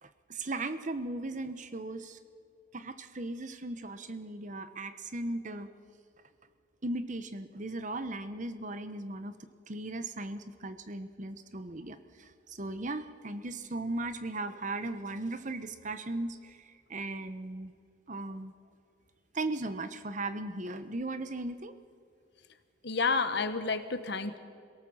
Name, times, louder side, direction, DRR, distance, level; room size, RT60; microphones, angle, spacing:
voice 1, 0.0-2.2 2.7-5.7 6.8-9.4 9.7-17.7 18.1-18.5 19.3-21.8, right 2 dB, 40° right, 11 dB, 1.0 m, -37 dB
voice 2, 22.8-24.4, left 4 dB, 60° left, 9 dB, 1.4 m, -30 dB
27.5 x 17.5 x 7.3 m, 2.3 s
head